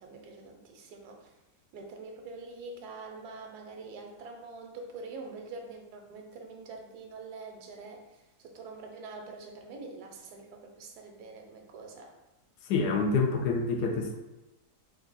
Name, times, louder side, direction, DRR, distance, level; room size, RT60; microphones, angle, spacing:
voice 1, 0.0-1.3 1.7-12.1, right 3 dB, 80° right, 2 dB, 1.1 m, -45 dB
voice 2, 12.6-14.2, left 4 dB, 85° left, 2 dB, 1.2 m, -27 dB
3.6 x 2.5 x 3.9 m, 1.0 s
omnidirectional pair, 1.7 m